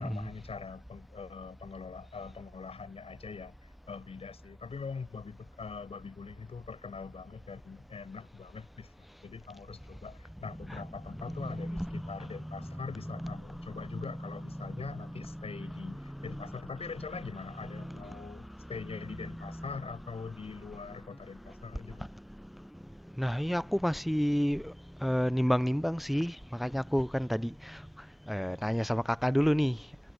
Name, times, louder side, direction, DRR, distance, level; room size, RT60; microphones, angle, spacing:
voice 1, 0.0-8.9 9.2-22.1, left 5 dB, 60° left, 6.7 m, -43 dB
voice 2, 11.1-17.2 17.6-18.2 18.8-18.9 19.2-19.8 23.2-24.7 25.0-27.8 28.3-29.8, equal, ahead, 0.4 m, -32 dB
cardioid pair, 70°, 12 cm